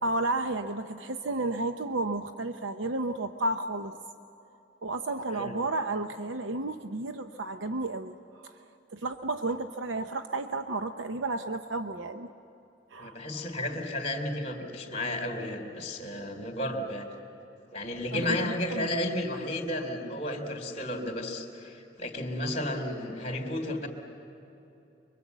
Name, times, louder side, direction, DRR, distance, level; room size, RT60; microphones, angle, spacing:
voice 1, 0.0-3.9 4.8-12.3 12.9-13.2 18.1-18.9, right 2 dB, 85° right, 7 dB, 0.8 m, -32 dB
voice 2, 13.0-17.1 17.7-23.9, left 1 dB, 35° left, 3 dB, 3.2 m, -33 dB
24.5 x 23.5 x 8.2 m, 2.8 s
head